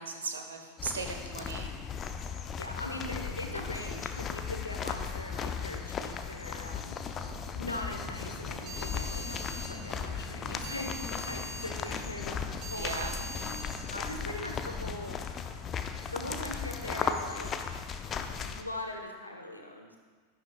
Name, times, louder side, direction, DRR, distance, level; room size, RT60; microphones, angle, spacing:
voice 1, 0.0-1.7 12.8-13.2, right 4 dB, 70° right, 4 dB, 1.2 m, -37 dB
sound 1, 0.8-18.6, left 6 dB, 25° left, 0.6 m, -37 dB
voice 2, 2.3-7.0 7.6-9.4 9.7-13.1 13.3-13.5 13.9-15.2 16.1-17.5 18.1-20.0, left 1 dB, 85° left, 3 dB, 1.1 m, -41 dB
sound 2, 7.2-14.5, right 1 dB, 40° right, 1.7 m, -44 dB
12.0 x 11.0 x 2.3 m, 1.6 s
figure-of-eight pair, 90°, 0 cm